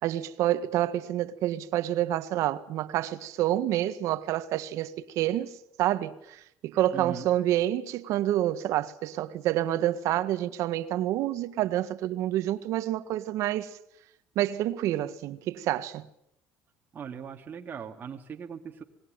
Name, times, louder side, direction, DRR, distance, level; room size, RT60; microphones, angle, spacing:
voice 1, 0.0-13.8 14.3-16.1, right 13 dB, 65° right, 1.7 m, -28 dB
voice 2, 6.9-7.3 16.9-18.8, right 7 dB, 35° right, 2.6 m, -39 dB
26.5 x 21.0 x 9.1 m
cardioid pair, 120°, 6 cm